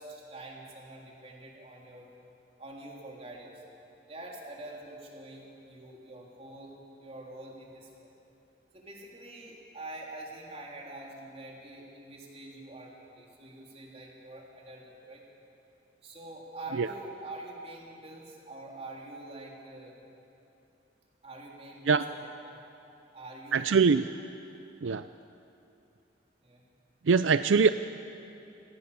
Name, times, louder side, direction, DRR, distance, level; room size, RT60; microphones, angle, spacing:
voice 1, 0.0-2.1 2.6-3.6 4.1-8.1 8.7-15.2 16.0-19.9 21.2-22.6 23.1-23.8 26.4-26.6, right 2 dB, 30° right, -2 dB, 3.5 m, -45 dB
voice 2, 23.5-24.1 24.8-25.1 27.0-27.7, right 5 dB, 75° right, 12 dB, 0.5 m, -22 dB
26.5 x 18.0 x 7.0 m, 2.8 s
head